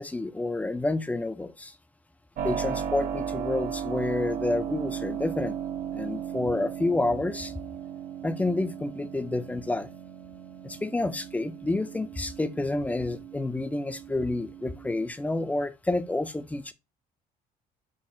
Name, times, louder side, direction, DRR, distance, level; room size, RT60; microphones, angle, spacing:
voice 1, 0.0-1.7 2.4-5.6 5.9-7.5 8.2-9.9 10.6-16.7, left 2 dB, 10° left, 0.3 m, -29 dB
Keyboard (musical), 2.4-15.1, right 8 dB, 55° right, 0.5 m, -36 dB
3.8 x 2.1 x 3.8 m
cardioid pair, 110°, 17 cm